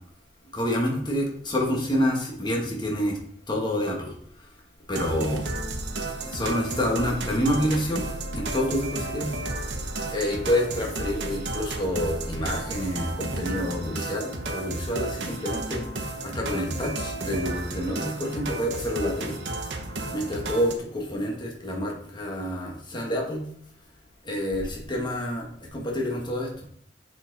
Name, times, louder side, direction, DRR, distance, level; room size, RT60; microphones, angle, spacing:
voice 1, 0.5-3.2 3.5-4.1 4.9-5.4 6.2-9.3 10.1-15.8 16.2-19.3 20.1-23.4 24.2-25.5 25.7-26.5, equal, 25° left, -1 dB, 1.7 m, -28 dB
sound 1, 4.9-20.7, right 2 dB, 65° right, 1.1 m, -33 dB
7.5 x 5.9 x 4.1 m, 0.64 s
head